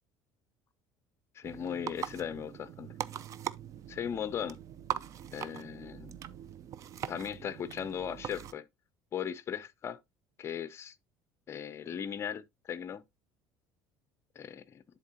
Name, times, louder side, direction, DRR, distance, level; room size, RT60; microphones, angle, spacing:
voice 1, 1.3-2.9 3.9-4.6 5.3-6.1 7.1-8.7 9.1-10.0 10.4-10.9 11.5-13.0 14.4-14.8, left 8 dB, 30° left, 0.6 m, -38 dB
sound 1, 1.4-8.5, right 10 dB, 40° right, 0.4 m, -41 dB
11.0 x 3.8 x 2.8 m
cardioid pair, 145°, 9 cm